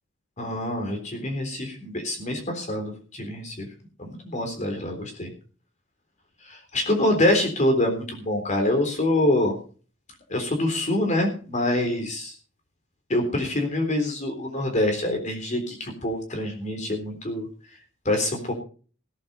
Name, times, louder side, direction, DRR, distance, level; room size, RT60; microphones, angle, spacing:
voice 1, 0.4-3.7 4.0-5.3 6.4-9.5 10.3-12.3 13.1-17.5 18.1-18.5, left 1 dB, 40° left, 3 dB, 3.7 m, -25 dB
17.0 x 8.7 x 5.5 m, 0.39 s
head